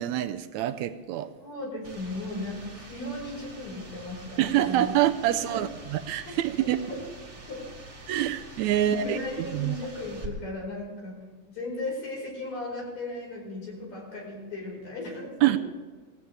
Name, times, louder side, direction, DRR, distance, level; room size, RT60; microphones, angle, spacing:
voice 1, 0.0-1.3 4.4-6.8 8.1-9.8 15.4-15.6, right 13 dB, 80° right, 10 dB, 1.8 m, -26 dB
voice 2, 1.4-5.0 5.3-5.6 6.3-7.0 7.5-7.7 8.8-15.6, left 2 dB, 60° left, -2 dB, 5.9 m, -36 dB
sound 1, 1.8-10.3, right 2 dB, 25° right, 2.1 m, -46 dB
18.0 x 15.0 x 3.3 m, 1.4 s
omnidirectional pair, 3.5 m